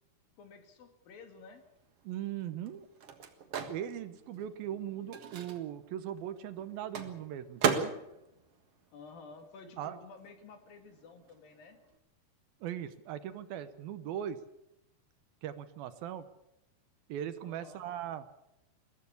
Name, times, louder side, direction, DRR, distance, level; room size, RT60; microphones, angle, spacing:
voice 1, 0.4-1.6 4.3-5.1 8.9-11.8 17.4-17.9, left 4 dB, 60° left, 6 dB, 3.8 m, -53 dB
Microwave oven, 1.7-9.8 10.1-12.0, right 6 dB, 50° right, 1.9 m, -38 dB
voice 2, 2.0-2.9 3.7-7.9 9.8-10.0 12.6-14.4 15.4-16.3 17.1-18.3, right 10 dB, 70° right, 11 dB, 2.5 m, -39 dB
22.0 x 15.5 x 8.4 m, 0.86 s
omnidirectional pair, 4.8 m